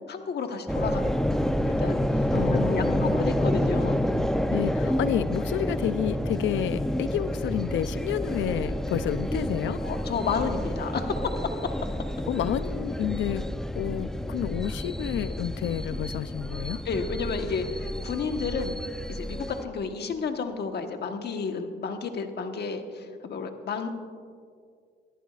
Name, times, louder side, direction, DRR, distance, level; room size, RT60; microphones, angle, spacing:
voice 1, 0.1-2.3 2.7-4.2 9.8-11.1 16.8-18.8 19.1-23.9, left 5 dB, 55° left, 5 dB, 1.3 m, -31 dB
sound 1, 0.7-19.6, equal, ahead, 0.6 m, -29 dB
voice 2, 2.3-3.3 4.5-9.8 12.3-13.5 13.8-16.8, left 11 dB, 75° left, 14 dB, 0.6 m, -30 dB
21.5 x 14.5 x 2.5 m, 2.2 s
cardioid pair, 90°, 20 cm